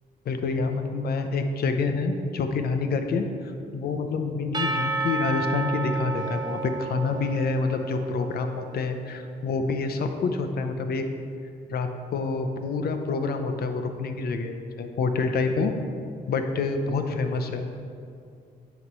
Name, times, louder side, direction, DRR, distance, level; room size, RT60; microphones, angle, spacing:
voice 1, 0.3-3.3 3.7-11.1 11.7-15.7 16.3-17.6, left 4 dB, 70° left, 6 dB, 0.7 m, -27 dB
Percussion / Church bell, 4.5-8.4, right 3 dB, 25° right, 0.7 m, -31 dB
9.2 x 3.1 x 5.5 m, 2.4 s
cardioid pair, 85°, 17 cm